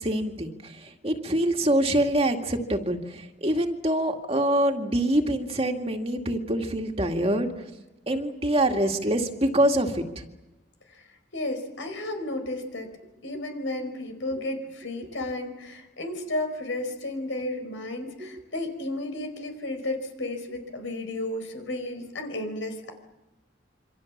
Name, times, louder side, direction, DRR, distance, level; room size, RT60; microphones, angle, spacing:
voice 1, 0.0-7.5 8.1-10.2 18.2-18.3, right 1 dB, 30° right, 3 dB, 2.1 m, -25 dB
voice 2, 10.9-12.9 13.2-22.9, left 1 dB, 85° left, 6 dB, 4.7 m, -33 dB
27.5 x 25.0 x 7.3 m, 1.0 s
head